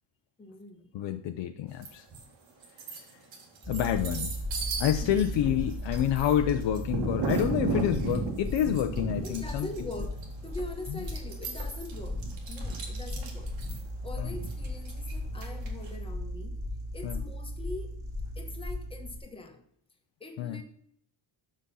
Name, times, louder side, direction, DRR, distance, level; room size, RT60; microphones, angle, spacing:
voice 1, 0.4-0.9 5.0-5.1 9.2-12.2 12.5-16.6 16.9-18.0 18.4-19.6 20.2-20.6, left 2 dB, 10° left, 4 dB, 1.1 m, -43 dB
voice 2, 0.9-2.1 3.0-3.1 3.7-4.3 4.8-9.7 14.2-14.3 17.0-17.2 20.4-20.6, left 10 dB, 75° left, 7 dB, 0.7 m, -28 dB
sound 1, 1.8-2.2 2.6-15.9, right 4 dB, 80° right, 2.1 m, -35 dB
sound 2, 3.6-19.2, left 1 dB, 5° right, 2.0 m, -37 dB
6.3 x 5.2 x 5.4 m, 0.70 s
cardioid pair, 150°, 45 cm